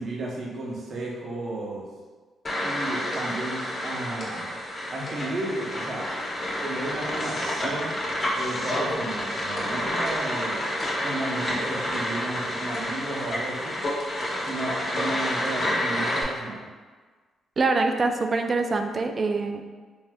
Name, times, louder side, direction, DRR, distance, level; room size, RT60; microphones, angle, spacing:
voice 1, 0.0-1.9 2.6-4.5 4.9-6.0 6.6-8.0 8.3-10.6 11.0-13.8 14.4-16.7, right 2 dB, 60° right, -3 dB, 0.7 m, -33 dB
sound 1, 2.4-16.2, left 1 dB, 45° left, 0.9 m, -29 dB
voice 2, 17.6-19.7, right 3 dB, 45° right, 5 dB, 0.3 m, -24 dB
3.3 x 2.6 x 2.3 m, 1.4 s
supercardioid pair, 60°, 0 cm